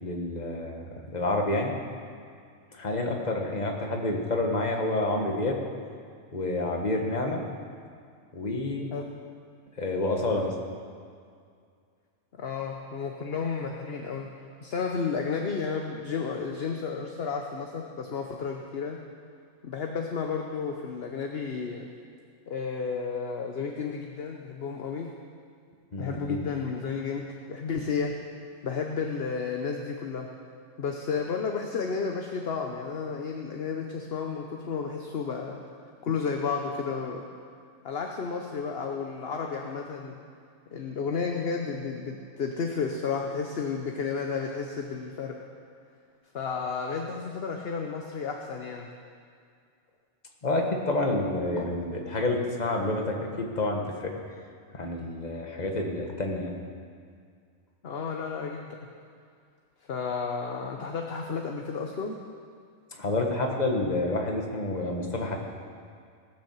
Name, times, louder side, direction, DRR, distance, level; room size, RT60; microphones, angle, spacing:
voice 1, 0.0-0.8 1.1-1.7 2.7-5.6 6.3-7.4 8.3-8.9 9.8-10.5 25.9-26.4 50.4-54.1 54.7-56.5 62.9-65.4, left 2 dB, 35° left, 1 dB, 1.5 m, -28 dB
voice 2, 12.4-14.3 14.6-19.0 19.6-21.9 22.5-25.1 26.0-28.1 28.6-30.3 30.8-35.6 36.0-37.2 37.8-40.2 40.7-45.3 46.3-48.9 57.8-58.8 59.9-62.2, left 5 dB, 55° left, 2 dB, 1.0 m, -32 dB
19.0 x 6.5 x 7.2 m, 2.2 s
omnidirectional pair, 1.3 m